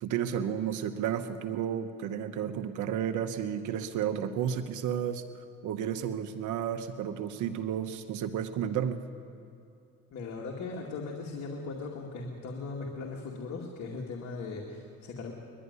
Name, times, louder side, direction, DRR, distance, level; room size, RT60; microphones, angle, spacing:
voice 1, 0.0-5.2 5.6-9.0, right 9 dB, 75° right, 9 dB, 1.0 m, -32 dB
voice 2, 10.1-15.3, left 3 dB, 65° left, -1 dB, 2.4 m, -38 dB
21.5 x 12.5 x 9.7 m, 2.7 s
cardioid pair, 90°, 30 cm